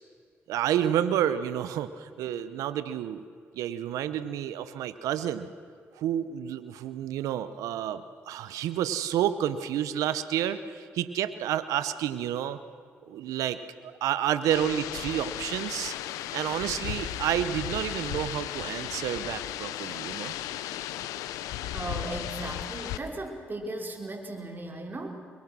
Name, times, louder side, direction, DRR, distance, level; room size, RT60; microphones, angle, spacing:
voice 1, 0.5-3.2 3.5-5.5 6.0-12.6 13.1-15.9 16.3-20.3, right 10 dB, 80° right, 13 dB, 0.9 m, -30 dB
sound 1, 14.5-23.0, left 12 dB, 85° left, 0.8 m, -35 dB
voice 2, 21.7-25.2, right 2 dB, 35° right, 1 dB, 5.4 m, -36 dB
26.0 x 22.0 x 6.2 m, 2.2 s
supercardioid pair, 45°, 6 cm